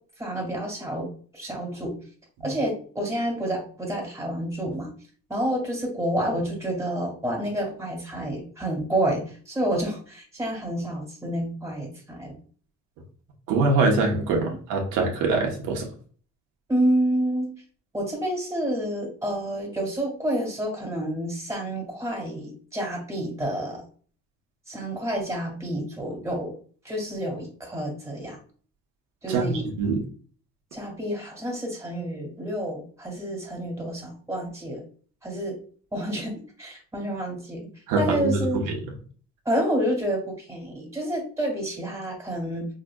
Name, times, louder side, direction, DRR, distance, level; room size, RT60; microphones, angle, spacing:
voice 1, 0.2-2.0 2.4-4.9 5.3-12.4 16.7-17.5 17.9-23.8 24.7-26.5 26.8-28.4 29.2-29.7 30.7-34.8 35.2-35.6 35.9-37.7 38.0-38.6 39.5-42.7, right 1 dB, 10° right, 0 dB, 1.8 m, -29 dB
voice 2, 13.5-15.9 29.3-29.5 29.8-30.0 37.9-38.8, right 3 dB, 85° right, 1 dB, 1.0 m, -23 dB
4.8 x 2.7 x 2.3 m, 0.43 s
cardioid pair, 115°, 30 cm